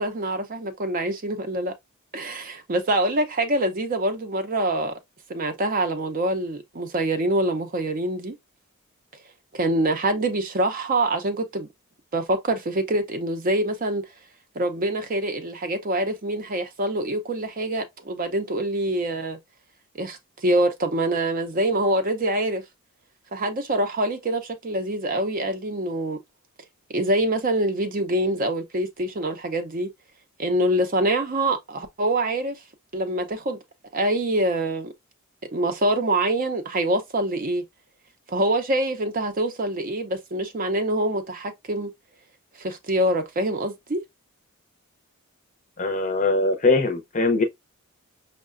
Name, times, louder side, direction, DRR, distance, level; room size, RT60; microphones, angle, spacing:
voice 1, 0.0-1.7 2.1-4.9 5.3-8.4 9.5-11.7 12.1-14.0 14.6-19.4 19.9-22.6 23.3-26.2 26.9-29.9 30.4-32.6 32.9-33.6 33.9-34.9 35.5-37.6 38.3-41.9 42.6-44.0, right 1 dB, 40° right, 0.5 m, -25 dB
voice 2, 45.8-47.4, left 3 dB, 35° left, 0.6 m, -21 dB
5.4 x 2.1 x 2.4 m
head